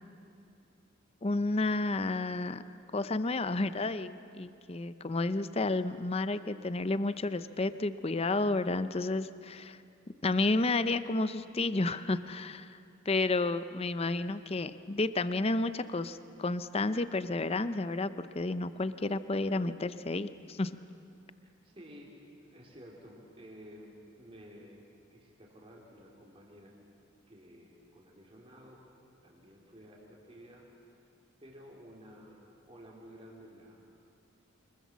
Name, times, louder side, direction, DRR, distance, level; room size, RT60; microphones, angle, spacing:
voice 1, 1.2-2.6 2.9-9.8 10.2-12.8 13.1-20.7, left 2 dB, 30° left, 12 dB, 0.6 m, -31 dB
voice 2, 21.4-22.1 22.5-26.8 27.3-31.0 31.4-34.1, equal, 25° right, -2 dB, 3.3 m, -53 dB
24.5 x 21.5 x 7.4 m, 2.5 s
head